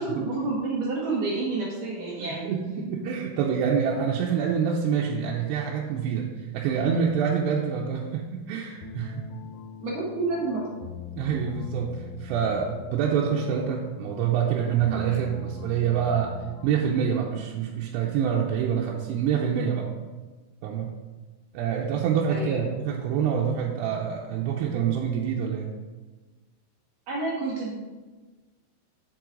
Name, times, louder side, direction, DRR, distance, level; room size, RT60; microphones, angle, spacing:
voice 1, 0.0-2.5 9.8-10.6 22.3-22.6 27.1-27.7, right 3 dB, 65° right, -4 dB, 2.2 m, -29 dB
voice 2, 2.2-9.2 11.2-16.3 16.6-19.9 20.6-21.0 21.5-25.7, right 7 dB, 85° right, -2 dB, 2.8 m, -26 dB
sound 1, 8.8-16.9, left 6 dB, 80° left, 2.7 m, -41 dB
7.7 x 7.0 x 3.8 m, 1.3 s
omnidirectional pair, 4.8 m